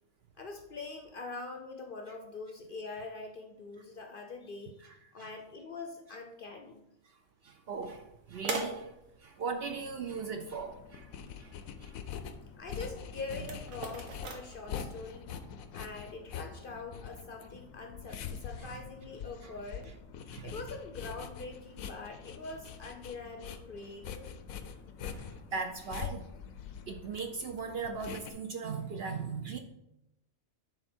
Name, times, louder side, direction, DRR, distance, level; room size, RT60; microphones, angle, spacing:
voice 1, 0.4-6.9 12.6-15.3 15.7-19.9 20.4-24.3, left 3 dB, 55° left, 4 dB, 0.7 m, -44 dB
voice 2, 4.8-5.3 7.4-8.9 9.2-11.1 11.4-11.5 11.8-11.9 19.4-19.5 20.3-20.5 25.0-26.3 26.9-29.6, right 5 dB, 60° right, 5 dB, 0.7 m, -39 dB
sound 1, 7.7-15.2, right 3 dB, 80° right, 1.4 m, -43 dB
sound 2, 9.7-28.3, left 7 dB, 85° left, 1.0 m, -44 dB
9.6 x 3.9 x 4.3 m, 0.89 s
omnidirectional pair, 1.4 m